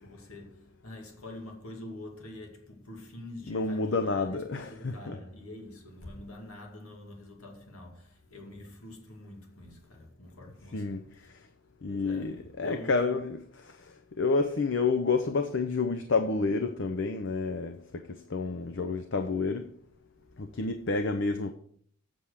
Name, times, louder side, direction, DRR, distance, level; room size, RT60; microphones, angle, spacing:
voice 1, 0.0-11.3 11.8-13.2, left 1 dB, 80° left, 2.2 m, -46 dB
voice 2, 3.5-5.2 10.7-11.5 11.8-19.7 20.4-21.5, left 3 dB, 55° left, 0.7 m, -30 dB
7.8 x 7.1 x 6.4 m
head